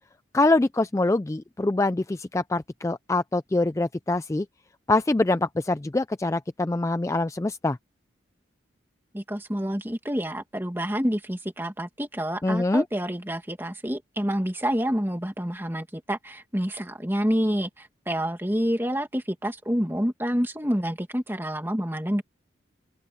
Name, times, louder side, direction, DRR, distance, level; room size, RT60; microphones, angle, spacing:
voice 1, 0.3-4.5 4.9-7.8 12.4-12.8, left 2 dB, 15° left, 0.3 m, -24 dB
voice 2, 9.1-22.2, equal, 10° right, 2.2 m, -28 dB
open air
head